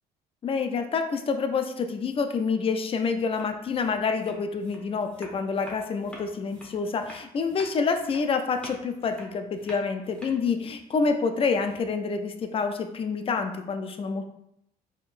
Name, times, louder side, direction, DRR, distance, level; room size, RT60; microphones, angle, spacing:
voice 1, 0.4-14.2, left 5 dB, 35° left, 7 dB, 0.5 m, -27 dB
sound 1, 3.3-12.1, equal, 5° left, 1.1 m, -48 dB
4.2 x 3.8 x 2.5 m, 0.78 s
cardioid pair, 110°, 17 cm